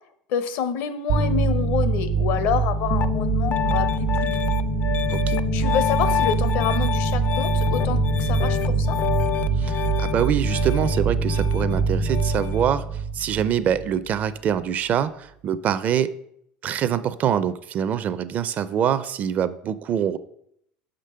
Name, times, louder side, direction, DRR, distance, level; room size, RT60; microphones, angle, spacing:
voice 1, 0.3-4.4 5.5-9.0, left 8 dB, 65° left, 12 dB, 0.8 m, -27 dB
sound 1, 1.1-14.3, right 5 dB, 80° right, 1.2 m, -24 dB
Piano, 2.9-12.6, left 11 dB, 40° left, 0.4 m, -27 dB
voice 2, 9.6-16.1 16.6-20.2, right 9 dB, 40° right, 14 dB, 0.5 m, -25 dB
5.9 x 5.2 x 5.6 m, 0.72 s
supercardioid pair, 120°, 4 cm